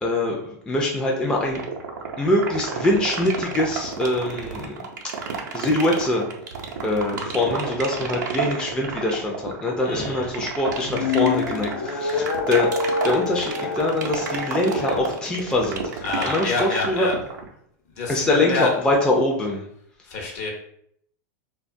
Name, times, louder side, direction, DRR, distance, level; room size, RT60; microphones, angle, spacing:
voice 1, 0.0-1.6 2.2-4.8 5.5-6.3 6.8-17.1 18.1-19.6, left 1 dB, 10° left, -1 dB, 0.3 m, -23 dB
sound 1, 1.5-17.5, right 6 dB, 90° right, 0.5 m, -30 dB
voice 2, 7.1-7.5 9.8-10.3 16.0-17.2 17.9-18.8 20.0-20.5, left 3 dB, 60° left, 0 dB, 0.8 m, -28 dB
sound 2, 10.7-15.1, left 5 dB, 85° left, 0.4 m, -27 dB
2.4 x 2.2 x 2.5 m, 0.69 s
hypercardioid pair, 120°, 10 cm